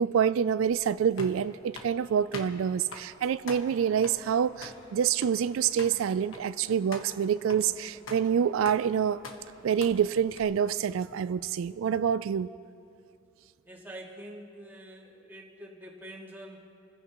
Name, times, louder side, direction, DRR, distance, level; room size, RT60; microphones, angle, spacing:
voice 1, 0.0-9.2 9.6-12.5, right 8 dB, 90° right, 0.3 m, -27 dB
sound 1, 0.7-10.4, left 3 dB, 90° left, 1.4 m, -46 dB
sound 2, 3.8-12.2 12.5-12.6 13.7-13.8, right 1 dB, 50° left, 3.8 m, -55 dB
voice 2, 13.6-16.7, right 1 dB, 10° right, 2.1 m, -46 dB
28.0 x 15.5 x 3.0 m
head